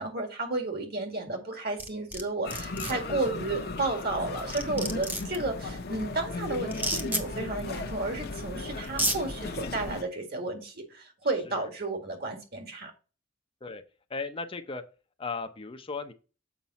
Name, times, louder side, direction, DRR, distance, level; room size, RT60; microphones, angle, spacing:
voice 1, 0.0-12.9, right 2 dB, 55° right, 2.0 m, -32 dB
sound 1, 1.8-2.2 2.5-2.9 4.1-4.2 4.5-5.4 6.7-7.2 8.3-8.4 8.8-9.2, right 1 dB, 10° right, 0.9 m, -30 dB
sound 2, 2.4-10.0, left 3 dB, 55° left, 0.9 m, -36 dB
voice 2, 14.1-14.8 15.2-16.1, left 4 dB, 30° left, 0.6 m, -36 dB
7.2 x 5.2 x 4.1 m
head